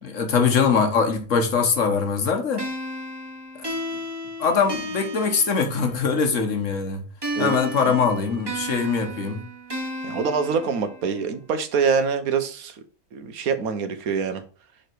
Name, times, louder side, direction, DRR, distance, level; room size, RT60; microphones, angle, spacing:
voice 1, 0.0-2.7 3.6-3.7 4.4-7.0 7.4-9.4, left 5 dB, 65° left, 1.6 m, -22 dB
sound 1, 2.6-6.2 7.2-11.2, right 1 dB, 20° right, 1.1 m, -33 dB
voice 2, 7.4-8.0 10.0-12.8 13.1-14.4, right 5 dB, 90° right, 1.4 m, -25 dB
5.9 x 5.0 x 4.5 m
omnidirectional pair, 1.5 m